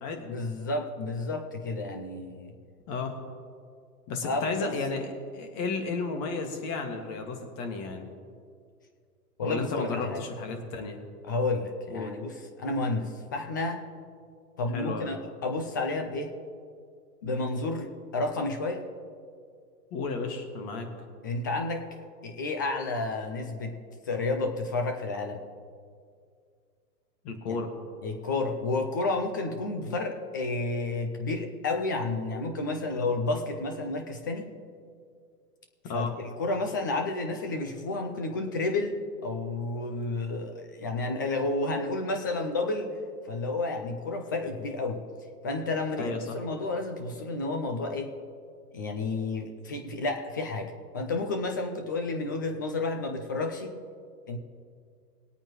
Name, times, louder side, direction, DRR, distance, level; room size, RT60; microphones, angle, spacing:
voice 1, 0.2-2.5 4.2-4.7 9.4-10.2 11.2-13.8 14.6-16.3 17.2-18.9 21.2-21.9 22.2-23.8 24.1-25.4 27.5-27.6 28.0-34.5 35.9-42.9 43.3-45.0 45.4-48.1 48.7-53.8 54.3-54.4, left 2 dB, 15° left, 4 dB, 0.3 m, -31 dB
voice 2, 4.1-8.1 9.4-11.0 11.9-12.1 14.7-15.1 19.9-20.9 27.2-27.7 35.9-36.2 46.0-46.4, left 4 dB, 35° left, 4 dB, 2.0 m, -33 dB
21.0 x 8.8 x 3.1 m, 2.2 s
hypercardioid pair, 120°, 47 cm